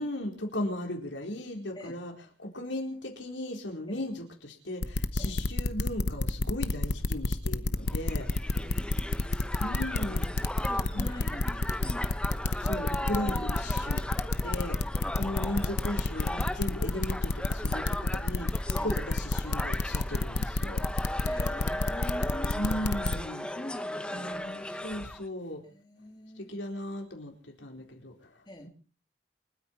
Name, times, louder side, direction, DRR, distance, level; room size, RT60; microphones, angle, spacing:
voice 1, 0.0-2.1 2.4-8.3 9.6-10.3 10.9-11.3 12.5-14.0 14.4-14.8 15.2-20.9 22.5-23.5 24.1-25.6 26.4-28.7, left 1 dB, 90° left, 2 dB, 4.3 m, -37 dB
sound 1, 4.8-23.2, left 2 dB, 65° left, 0.9 m, -29 dB
Crowd, 7.9-25.2, left 1 dB, 5° left, 1.0 m, -37 dB
voice 2, 8.4-8.8 9.2-9.8 10.4-12.5 15.0-15.2 18.7-19.0 21.2-22.7 23.4-24.6 25.6-26.5 28.5-28.7, left 1 dB, 25° left, 2 dB, 2.8 m, -44 dB
28.5 x 9.7 x 4.6 m, 0.38 s
head